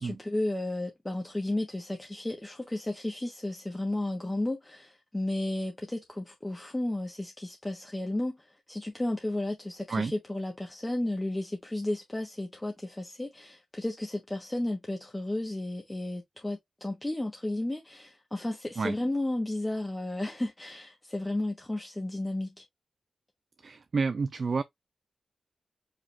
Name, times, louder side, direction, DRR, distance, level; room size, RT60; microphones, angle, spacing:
voice 1, 0.0-22.6, left 1 dB, 15° left, 1.2 m, -33 dB
voice 2, 23.6-24.6, right 4 dB, 55° right, 0.4 m, -29 dB
4.9 x 3.6 x 2.5 m
wide cardioid pair, 85°, 0 cm